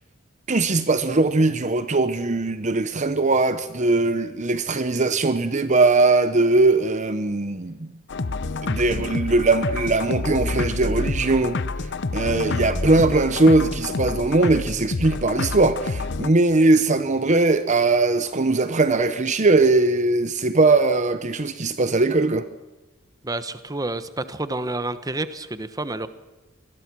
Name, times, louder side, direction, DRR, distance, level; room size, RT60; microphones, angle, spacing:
voice 1, 0.5-7.9 8.6-11.6 12.1-22.5, right 3 dB, 40° right, 0.9 m, -20 dB
sound 1, 8.1-16.3, left 3 dB, 60° left, 0.8 m, -28 dB
voice 2, 23.2-26.1, right 2 dB, 20° right, 1.1 m, -29 dB
25.0 x 21.0 x 6.2 m
head